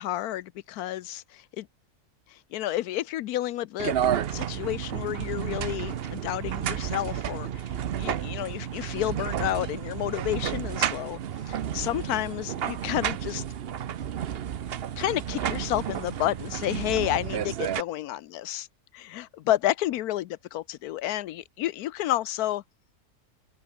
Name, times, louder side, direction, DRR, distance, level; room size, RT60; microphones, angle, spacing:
voice 1, 0.0-1.7 2.3-4.0 4.3-7.6 8.0-11.2 11.5-13.4 15.0-18.6 18.9-22.6, left 14 dB, 85° left, 1.1 m, -30 dB
sound 1, 3.8-17.8, right 9 dB, 55° right, 0.7 m, -31 dB
open air
omnidirectional pair, 1.6 m